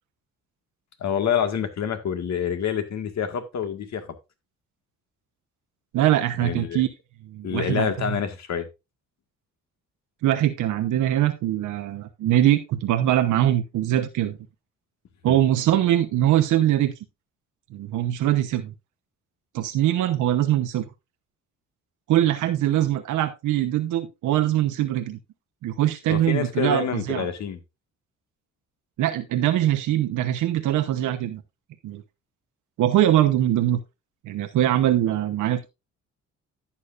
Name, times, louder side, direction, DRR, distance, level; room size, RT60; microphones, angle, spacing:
voice 1, 1.0-4.1 6.4-6.8 7.4-8.7 15.3-15.4 26.1-27.6, left 7 dB, 65° left, 1.8 m, -27 dB
voice 2, 5.9-6.9 7.3-8.2 10.2-14.4 15.2-16.9 17.7-18.7 19.5-20.8 22.1-25.2 25.6-27.3 29.0-31.4 31.8-32.0 32.8-33.8 34.2-35.7, right 12 dB, 80° right, 0.9 m, -22 dB
11.5 x 8.6 x 2.5 m
cardioid pair, 90°, 30 cm